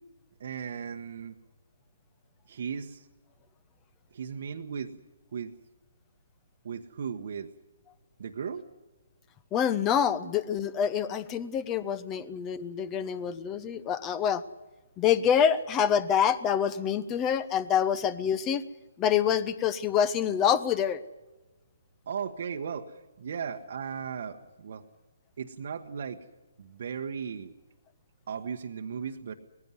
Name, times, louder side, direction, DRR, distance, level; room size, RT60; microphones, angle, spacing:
voice 1, 0.4-1.4 2.5-3.1 4.1-5.0 5.3-5.5 6.6-7.5 8.2-8.7 10.2-10.3 12.2-12.3 22.1-24.8 25.4-26.3 26.6-27.5 28.3-29.3, right 7 dB, 55° right, 3 dB, 1.1 m, -36 dB
voice 2, 9.5-14.4 15.0-18.6 19.0-21.0, left 8 dB, 20° left, 16 dB, 0.9 m, -26 dB
19.5 x 15.5 x 9.5 m, 1.2 s
figure-of-eight pair, 140°, 0 cm